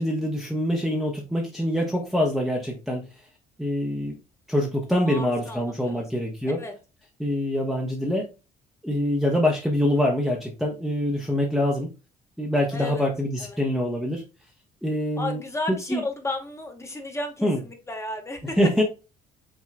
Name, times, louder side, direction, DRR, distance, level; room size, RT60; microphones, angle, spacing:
voice 1, 0.0-3.0 3.6-4.2 4.5-6.6 7.2-8.3 8.8-11.9 12.4-14.2 14.8-15.4 15.9-16.0 17.4-17.6 18.6-18.8, left 1 dB, ahead, -2 dB, 1.0 m, -25 dB
voice 2, 5.0-6.2 6.6-6.7 12.7-13.0 13.4-13.6 15.2-18.6, left 2 dB, 15° left, 4 dB, 1.3 m, -33 dB
5.9 x 3.6 x 2.2 m, 0.30 s
cardioid pair, 110°, 17 cm